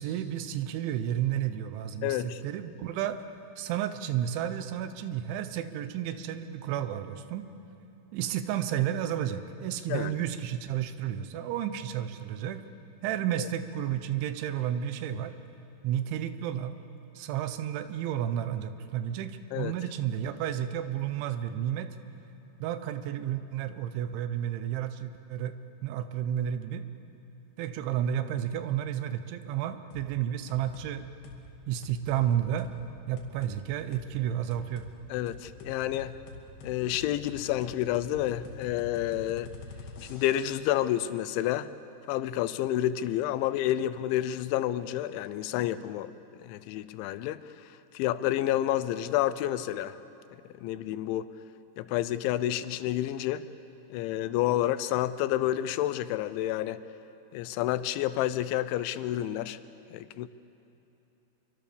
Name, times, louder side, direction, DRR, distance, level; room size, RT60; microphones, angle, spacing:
voice 1, 0.0-3.2 3.6-7.4 8.1-12.6 13.0-15.3 15.8-16.8 17.2-22.0 22.6-25.6 25.8-26.8 27.6-31.1 31.7-32.7 33.1-34.9, right 10 dB, 85° right, 11 dB, 3.4 m, -31 dB
voice 2, 2.0-2.4 9.9-10.2 13.4-13.5 19.5-19.7 35.1-36.1 36.6-39.5 40.1-41.7 42.1-46.1 46.4-47.4 47.9-50.0 50.6-51.3 51.8-53.5 53.9-56.8 57.3-59.6 59.9-60.3, left 13 dB, 90° left, 14 dB, 3.1 m, -29 dB
sound 1, 29.9-30.1 30.5-30.9 31.2-31.4 31.8-32.2 32.6-32.7 33.2-33.6 33.9-34.1 34.5-34.9 35.3-40.6, left 4 dB, 60° left, 4.0 m, -45 dB
26.5 x 23.5 x 6.9 m, 2.9 s
omnidirectional pair, 5.2 m